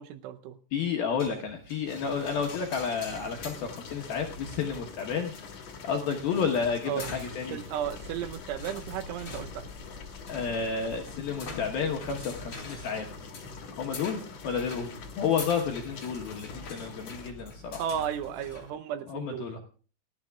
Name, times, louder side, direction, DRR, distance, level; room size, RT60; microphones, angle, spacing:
voice 1, 0.0-0.6 6.9-7.1 7.5-9.7 17.8-19.6, right 9 dB, 80° right, 9 dB, 3.0 m, -34 dB
voice 2, 0.7-7.6 10.3-13.1 13.7-14.9 15.2-17.8 19.1-19.6, left 6 dB, 70° left, 1 dB, 2.3 m, -31 dB
sound 1, 1.2-18.7, left 3 dB, 25° left, 3.5 m, -45 dB
sound 2, 1.9-17.3, left 5 dB, 50° left, 2.2 m, -46 dB
sound 3, 7.8-12.8, left 2 dB, 20° right, 2.6 m, -49 dB
29.5 x 10.5 x 2.3 m, 0.39 s
omnidirectional pair, 6.0 m